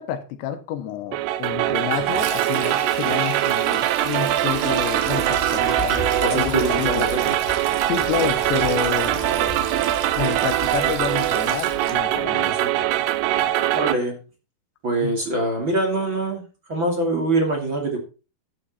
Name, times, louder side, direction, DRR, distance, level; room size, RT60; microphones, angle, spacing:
voice 1, 0.0-7.1 7.9-9.2 10.2-12.6 15.0-15.1, left 9 dB, 85° left, 3.6 m, -29 dB
sound 1, 1.1-14.0, right 13 dB, 80° right, 2.7 m, -22 dB
Sink (filling or washing), 1.9-12.0, right 6 dB, 55° right, 3.5 m, -34 dB
sound 2, 4.3-12.3, left 3 dB, ahead, 4.4 m, -36 dB
voice 2, 6.2-7.3 12.5-12.7 13.7-14.2 14.8-16.4 16.7-18.0, right 2 dB, 30° right, 2.9 m, -24 dB
11.5 x 8.8 x 4.3 m
omnidirectional pair, 5.0 m